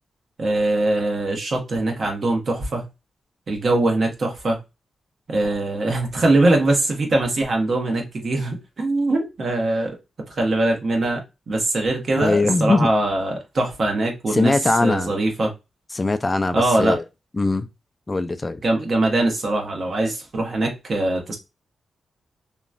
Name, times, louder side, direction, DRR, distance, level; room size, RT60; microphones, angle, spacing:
voice 1, 0.4-2.9 3.5-4.6 5.3-9.9 10.3-15.5 16.5-17.0 18.6-21.4, right 2 dB, 55° right, 1.0 m, -22 dB
voice 2, 12.2-12.9 14.3-15.1 15.9-17.0 17.4-17.7 18.1-18.6, left 3 dB, 30° left, 0.3 m, -21 dB
2.9 x 2.2 x 2.5 m
cardioid pair, 60°, 0 cm